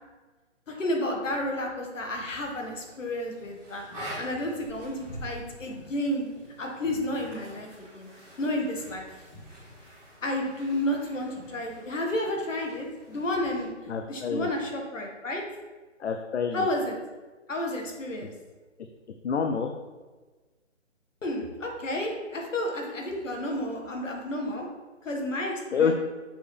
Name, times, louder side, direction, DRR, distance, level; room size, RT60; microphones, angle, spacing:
voice 1, 0.7-3.9 4.2-6.3 6.6-8.1 8.4-9.1 10.2-13.7 14.1-15.4 16.5-17.0 17.5-18.3 21.2-24.7 25.0-26.0, left 1 dB, 80° left, 1 dB, 1.8 m, -31 dB
sound 1, 2.1-13.6, equal, 5° left, 0.9 m, -46 dB
voice 2, 13.9-14.5 16.0-16.7 19.2-19.7 25.7-26.0, left 6 dB, 60° left, 5 dB, 0.6 m, -27 dB
7.5 x 4.9 x 3.4 m, 1.3 s
hypercardioid pair, 165°, 38 cm